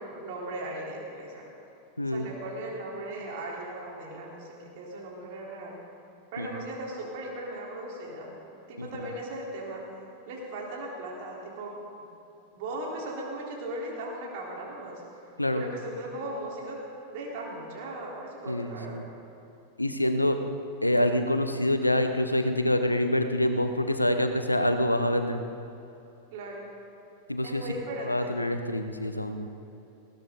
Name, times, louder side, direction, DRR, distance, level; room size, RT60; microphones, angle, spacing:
voice 1, 0.0-1.4 2.1-5.8 6.3-8.4 8.7-9.9 10.3-11.8 12.5-15.0 15.5-16.9 17.1-19.0 26.3-26.7 27.4-28.4, right 1 dB, 50° right, -3 dB, 3.9 m, -38 dB
voice 2, 18.5-19.0 19.8-20.4 20.8-25.4 27.3-27.6 28.1-29.5, left 1 dB, 85° left, 8 dB, 1.0 m, -26 dB
20.0 x 16.5 x 4.0 m, 2.9 s
figure-of-eight pair, 90°, 0 cm